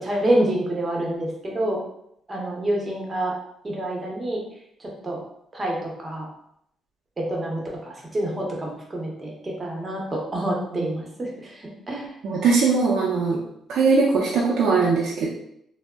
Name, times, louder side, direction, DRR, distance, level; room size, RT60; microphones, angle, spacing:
voice 1, 0.0-1.8 2.3-3.3 3.6-4.4 5.0-5.2 5.5-6.3 7.2-11.5 11.9-12.1, right 1 dB, 25° right, -2 dB, 0.8 m, -27 dB
voice 2, 12.2-13.4 13.7-15.3, right 4 dB, 75° right, -5 dB, 0.5 m, -20 dB
3.4 x 2.0 x 2.2 m, 0.75 s
cardioid pair, 90°, 0 cm